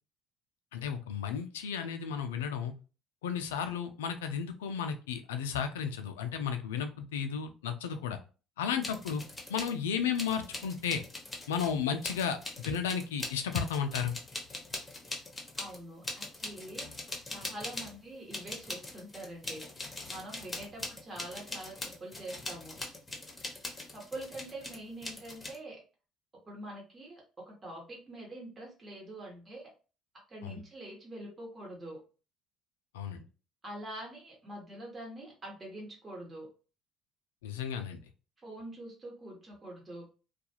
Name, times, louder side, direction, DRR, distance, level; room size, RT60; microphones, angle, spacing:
voice 1, 0.7-2.7 3.2-8.2 8.6-9.2 9.5-11.0 11.5-12.4 12.6-14.1 30.4-30.6 32.9-33.2 37.4-38.0, left 7 dB, 90° left, 7 dB, 0.3 m, -33 dB
sound 1, 8.8-9.7 10.1-18.0 18.3-25.6, left 2 dB, 20° left, 0.9 m, -42 dB
voice 2, 15.6-16.9 17.2-19.6 20.1-22.8 23.9-25.8 26.5-29.7 30.3-32.0 33.6-36.5 38.4-40.0, right 1 dB, 30° right, -3 dB, 1.2 m, -45 dB
2.4 x 2.3 x 2.8 m, 0.35 s
hypercardioid pair, 65°, 0 cm